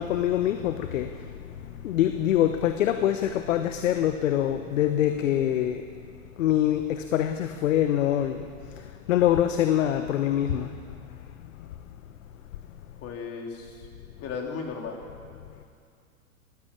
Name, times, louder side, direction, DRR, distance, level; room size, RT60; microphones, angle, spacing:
voice 1, 0.0-5.8 6.4-10.8, left 11 dB, 60° left, 9 dB, 1.2 m, -25 dB
voice 2, 13.0-13.9 14.2-15.1, left 5 dB, 30° left, 1 dB, 3.7 m, -35 dB
22.5 x 14.5 x 8.6 m, 2.3 s
hypercardioid pair, 105°, 44 cm